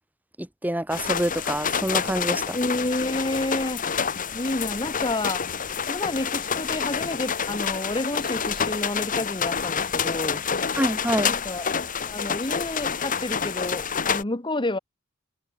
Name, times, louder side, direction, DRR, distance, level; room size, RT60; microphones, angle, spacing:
voice 1, 0.4-2.6 10.8-11.3, right 1 dB, 10° right, 1.9 m, -26 dB
sound 1, 0.9-14.2, left 6 dB, 40° left, 1.3 m, -28 dB
voice 2, 2.5-3.8 4.3-5.4 5.9-10.4 11.2-11.7 12.1-14.8, left 2 dB, 25° left, 1.7 m, -29 dB
head